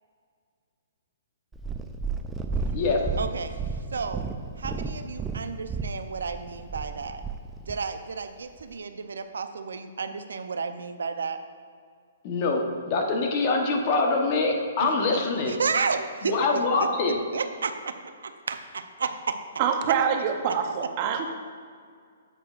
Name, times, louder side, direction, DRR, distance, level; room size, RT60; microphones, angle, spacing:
Purr, 1.5-7.9 8.6-8.7, right 4 dB, 10° right, 0.3 m, -32 dB
voice 1, 3.2-4.3 4.6-7.2 7.7-11.4 14.8-14.9 15.5-16.6 17.3-19.4 20.5-20.6, right 5 dB, 90° right, 9 dB, 0.5 m, -32 dB
voice 2, 12.2-15.5 16.2-17.2, left 3 dB, 35° left, 2 dB, 0.9 m, -24 dB
voice 3, 19.6-21.3, right 7 dB, 35° right, 5 dB, 0.7 m, -25 dB
8.6 x 8.0 x 2.4 m, 2.1 s
hypercardioid pair, 160°, 0 cm